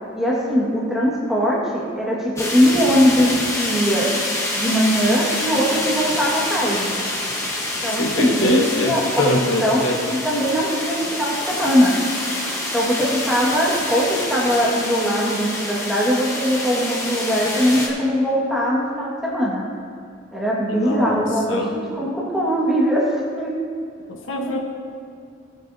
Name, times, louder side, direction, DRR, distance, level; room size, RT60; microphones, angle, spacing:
voice 1, 0.1-4.1 4.5-6.9 7.8-12.0 12.7-19.6 20.3-23.6 24.5-24.6, equal, ahead, -5 dB, 1.8 m, -21 dB
sound 1, 2.4-17.9, left 1 dB, 15° left, 1.2 m, -27 dB
voice 2, 8.0-10.0 20.7-21.2 21.5-21.7 24.1-24.6, left 1 dB, 75° left, 1 dB, 1.2 m, -23 dB
18.0 x 8.2 x 2.8 m, 2.3 s
head